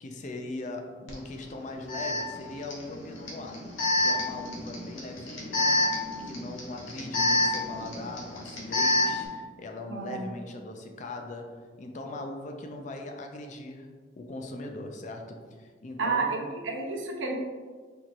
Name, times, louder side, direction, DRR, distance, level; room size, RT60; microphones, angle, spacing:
voice 1, 0.0-3.7 4.0-13.9 14.2-16.4, left 2 dB, 40° left, 3 dB, 0.4 m, -40 dB
Alarm, 1.1-1.2 1.9-9.3, left 2 dB, 90° left, 0.9 m, -28 dB
voice 2, 16.0-17.4, right 4 dB, 85° right, 1 dB, 0.6 m, -30 dB
4.3 x 2.9 x 2.5 m, 1.5 s
head